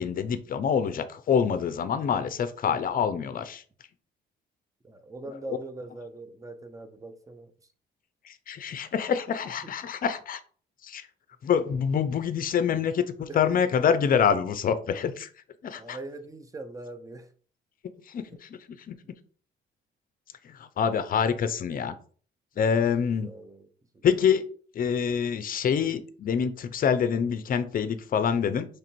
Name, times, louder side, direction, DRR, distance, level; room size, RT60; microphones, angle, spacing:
voice 1, 0.0-3.6 5.2-5.6 8.2-10.4 10.8-11.1 11.4-15.3 15.6-16.0 18.1-18.6 18.9-19.0 20.4-22.0 22.6-23.3 24.0-24.4 24.7-28.7, left 7 dB, 45° left, 12 dB, 0.5 m, -26 dB
voice 2, 4.8-7.5 9.6-9.7 13.3-13.5 15.8-17.3 18.3-18.4 22.8-22.9 23.2-23.7 23.9-24.0, right 2 dB, 15° right, 9 dB, 0.6 m, -42 dB
3.2 x 2.5 x 4.4 m, 0.43 s
cardioid pair, 90°, 20 cm